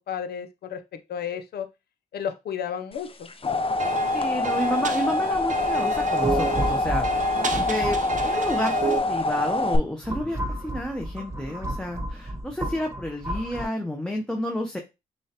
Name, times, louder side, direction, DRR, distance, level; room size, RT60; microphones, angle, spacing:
voice 1, 0.1-0.8 1.1-1.7 2.1-3.3, left 8 dB, 80° left, 9 dB, 0.7 m, -32 dB
sound 1, 3.1-9.8, left 2 dB, 35° left, 0.7 m, -25 dB
sound 2, 3.8-9.0, right 4 dB, 50° right, 0.7 m, -31 dB
voice 2, 4.1-8.0 8.2-10.4 10.6-14.8, equal, 5° left, 2 dB, 0.9 m, -30 dB
Space echo, 5.3-9.2 9.7-13.6, right 1 dB, 15° right, 1.1 m, -33 dB
6.2 x 2.4 x 2.9 m, 0.25 s
cardioid pair, 55°, 16 cm